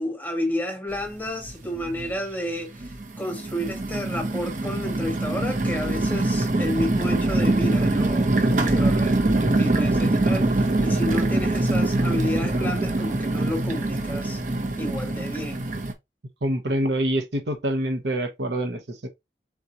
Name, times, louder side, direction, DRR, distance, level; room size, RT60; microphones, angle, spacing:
voice 1, 0.0-14.4 14.8-15.6, equal, 10° left, 0.8 m, -31 dB
sound 1, 0.9-1.0 1.4-2.1 2.7-15.9, right 2 dB, 45° right, 0.7 m, -24 dB
voice 2, 16.4-19.1, right 1 dB, 70° right, 0.9 m, -26 dB
3.9 x 3.6 x 2.9 m
head